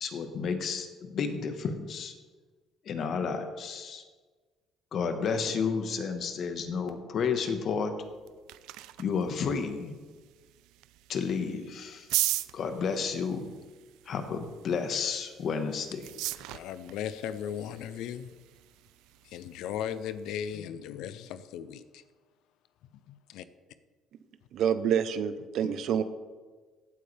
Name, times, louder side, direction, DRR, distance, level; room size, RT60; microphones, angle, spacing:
voice 1, 0.0-2.1 2.8-4.0 4.9-7.9 9.0-9.9 11.1-12.1 12.5-13.5 14.1-16.0, left 5 dB, 50° left, 7 dB, 1.4 m, -31 dB
sound 1, 8.0-20.6, right 16 dB, 85° right, 0.4 m, -40 dB
voice 2, 16.5-18.3 19.2-22.0 22.9-23.4 25.6-25.7, left 9 dB, 80° left, 13 dB, 0.5 m, -37 dB
voice 3, 24.5-26.0, right 8 dB, 65° right, 12 dB, 0.8 m, -27 dB
16.0 x 8.5 x 3.4 m, 1.4 s
cardioid pair, 120°, 0 cm